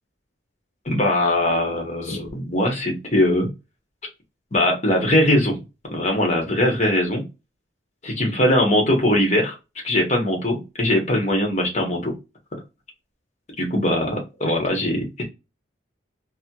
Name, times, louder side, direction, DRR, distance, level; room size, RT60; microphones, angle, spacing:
voice 1, 0.8-3.5 4.5-5.6 5.9-7.3 8.0-9.6 9.8-12.1 12.5-12.6 13.6-15.2, left 1 dB, 35° left, 1 dB, 1.0 m, -21 dB
4.2 x 2.1 x 2.2 m, 0.26 s
head